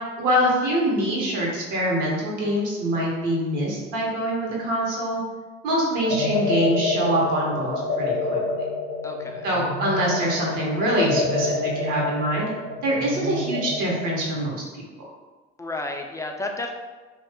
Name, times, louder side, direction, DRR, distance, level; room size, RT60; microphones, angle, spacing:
voice 1, 0.2-5.2 5.6-8.6 9.4-12.5 12.8-14.6, right 1 dB, 65° right, -2 dB, 1.0 m, -24 dB
sound 1, 6.1-14.4, left 3 dB, 60° left, 0.5 m, -28 dB
voice 2, 9.0-9.5 15.6-16.7, left 2 dB, 10° left, 2 dB, 0.4 m, -31 dB
2.6 x 2.3 x 3.4 m, 1.3 s
hypercardioid pair, 50°, 33 cm